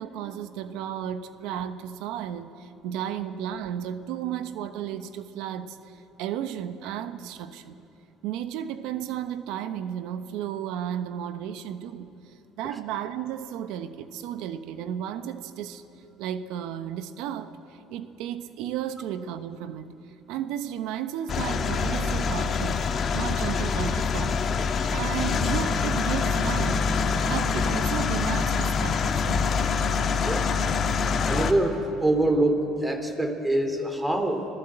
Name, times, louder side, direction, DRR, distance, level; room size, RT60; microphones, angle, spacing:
voice 1, 0.0-7.8 8.2-15.8 16.2-20.0 20.3-22.9 23.1-24.4 24.9-27.0 27.2-29.6, right 10 dB, 75° right, 1.0 m, -33 dB
sound 1, 21.3-31.5, left 5 dB, 45° left, 1.6 m, -25 dB
voice 2, 30.2-30.6 31.2-34.5, right 1 dB, 15° right, 3.4 m, -25 dB
25.5 x 17.0 x 7.9 m
supercardioid pair, 85°, 0 cm